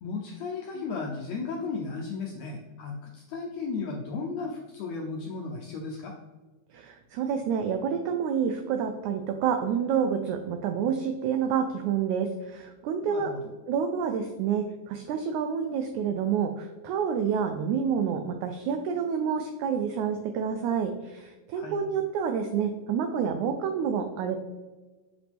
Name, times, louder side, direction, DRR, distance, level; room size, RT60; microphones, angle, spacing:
voice 1, 0.0-6.2 13.1-13.4 21.5-21.8, left 4 dB, 80° left, 0 dB, 1.6 m, -35 dB
voice 2, 6.7-13.3 13.7-24.4, right 7 dB, 90° right, 6 dB, 1.6 m, -28 dB
7.5 x 5.0 x 3.5 m, 1.2 s
omnidirectional pair, 3.9 m